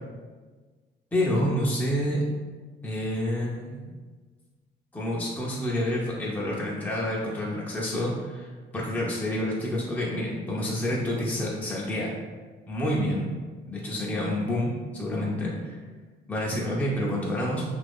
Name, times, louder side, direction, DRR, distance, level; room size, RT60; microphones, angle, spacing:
voice 1, 1.1-2.2 2.8-3.9 4.9-8.5 8.7-12.2 12.7-13.3 13.7-15.8 16.3-17.6, left 1 dB, 10° left, -5 dB, 0.6 m, -28 dB
2.8 x 2.6 x 3.5 m, 1.4 s
cardioid pair, 90°, 20 cm